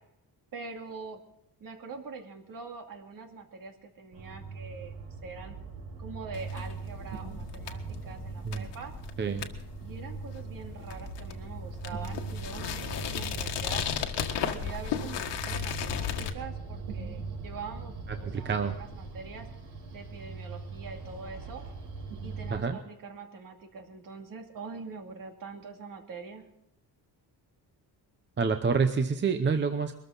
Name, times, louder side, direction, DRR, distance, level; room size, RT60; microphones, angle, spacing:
voice 1, 0.5-1.2 1.6-5.6 6.0-8.9 9.8-13.8 14.4-19.5 19.9-21.6 22.2-26.5, right 4 dB, 55° right, 3 dB, 2.6 m, -44 dB
sound 1, 4.1-22.6, right 4 dB, 80° right, 5.2 m, -41 dB
sound 2, 6.3-16.3, left 8 dB, 85° left, 1.7 m, -35 dB
voice 2, 18.2-18.8 22.5-22.8 28.4-29.9, right 5 dB, 25° right, 7 dB, 0.8 m, -27 dB
22.5 x 14.0 x 4.0 m, 0.81 s
cardioid pair, 175°, 41 cm